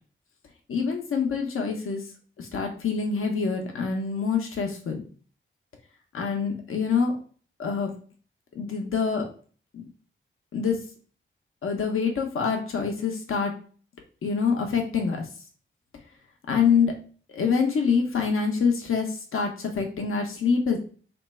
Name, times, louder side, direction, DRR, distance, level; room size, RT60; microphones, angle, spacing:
voice 1, 0.7-2.0 2.4-5.0 6.1-7.1 7.6-7.9 8.6-9.3 9.7-9.8 10.5-10.8 11.6-13.6 14.2-15.3 16.5-16.9 17.3-20.8, left 5 dB, 85° left, 3 dB, 0.6 m, -25 dB
2.9 x 2.2 x 4.1 m, 0.41 s
wide cardioid pair, 120°, 21 cm